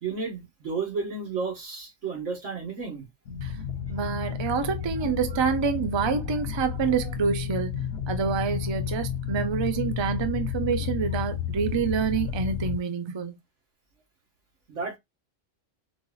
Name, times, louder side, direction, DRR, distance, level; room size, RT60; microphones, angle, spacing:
voice 1, 0.0-3.1 14.7-15.0, right 4 dB, 90° right, 1.7 m, -32 dB
sound 1, 3.3-12.8, left 8 dB, 70° left, 0.8 m, -31 dB
voice 2, 3.9-7.7 8.1-13.3, right 6 dB, 40° right, 0.4 m, -27 dB
4.6 x 2.7 x 2.2 m
omnidirectional pair, 1.2 m